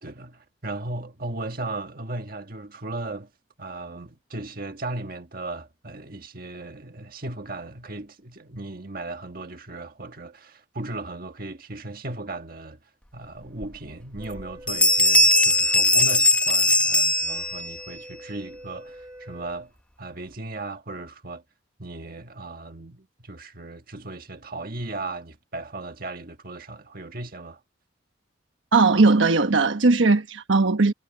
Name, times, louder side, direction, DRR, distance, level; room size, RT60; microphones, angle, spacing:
voice 1, 0.0-3.3 3.6-12.8 13.1-19.7 20.0-21.4 21.8-27.6, right 2 dB, 50° right, 1.6 m, -36 dB
Bell, 13.6-13.7 14.2-14.4 14.7-17.8, left 1 dB, 5° left, 1.2 m, -19 dB
Wind instrument woodwind instrument, 14.1-19.6, right 1 dB, 15° right, 6.4 m, -47 dB
voice 2, 28.7-30.9, right 3 dB, 80° right, 1.1 m, -18 dB
head